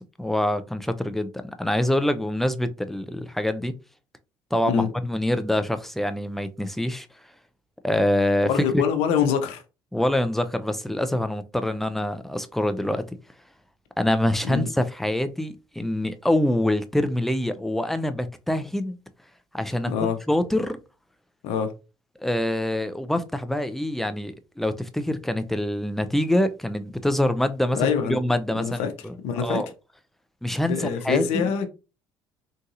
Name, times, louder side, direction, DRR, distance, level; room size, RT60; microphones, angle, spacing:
voice 1, 0.2-3.7 4.5-7.1 7.8-8.8 9.9-13.1 14.0-19.0 19.5-20.8 22.2-29.7 30.4-31.5, left 1 dB, ahead, 0.5 m, -25 dB
voice 2, 8.5-9.6 14.4-14.7 19.9-20.2 21.4-21.7 27.7-28.2 28.5-28.9 29.2-29.6 30.7-31.7, left 7 dB, 70° left, 0.7 m, -24 dB
3.9 x 2.6 x 2.5 m
hypercardioid pair, 65°, 11 cm